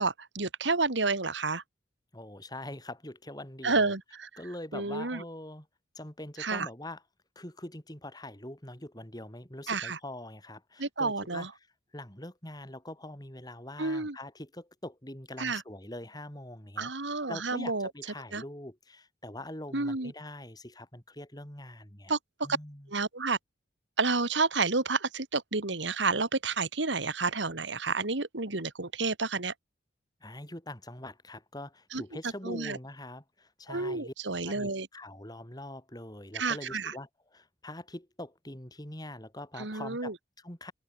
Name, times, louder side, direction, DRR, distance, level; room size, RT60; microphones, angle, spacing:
voice 1, 0.0-1.6 3.6-4.3 4.7-5.2 6.4-6.7 9.7-10.0 10.8-11.5 13.8-14.2 15.4-15.6 16.8-17.9 18.3-18.4 19.7-20.1 22.1-22.2 22.9-23.4 24.0-29.5 31.9-32.0 32.4-32.8 33.7-34.9 36.3-36.9 39.6-40.1, right 3 dB, 75° right, 2.3 m, -30 dB
voice 2, 2.1-3.9 4.4-5.7 5.9-7.0 7.4-11.5 11.9-16.9 17.3-22.1 22.4-22.9 30.2-34.1 34.4-40.7, left 1 dB, 20° left, 4.3 m, -43 dB
open air
head